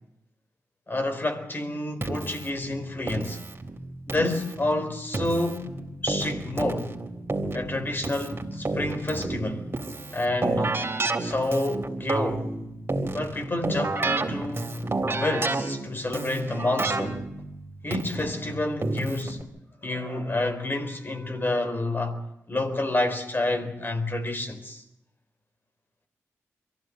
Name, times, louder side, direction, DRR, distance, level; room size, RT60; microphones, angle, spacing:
voice 1, 0.9-3.4 4.1-7.0 7.5-9.7 10.1-10.7 11.2-12.5 13.1-14.7 15.1-17.2 17.8-19.4 19.8-22.2 22.5-24.8, left 2 dB, 35° left, 4.0 m, -29 dB
Keyboard (musical), 2.0-19.4, right 2 dB, 40° right, 3.7 m, -31 dB
23.5 x 15.0 x 9.2 m
supercardioid pair, 45°, 6 cm